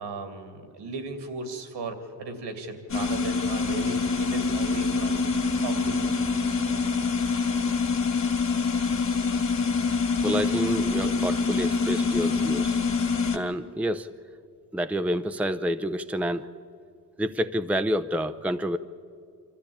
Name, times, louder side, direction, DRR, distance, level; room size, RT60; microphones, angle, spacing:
voice 1, 0.0-5.3 5.6-6.2, right 3 dB, 75° right, 7 dB, 2.7 m, -36 dB
sound 1, 2.9-13.4, left 4 dB, 45° left, 2.6 m, -25 dB
voice 2, 10.2-12.8 13.3-14.1 14.7-16.5 17.2-18.8, equal, 5° right, 9 dB, 0.7 m, -28 dB
26.0 x 13.5 x 8.6 m, 2.3 s
supercardioid pair, 65°, 42 cm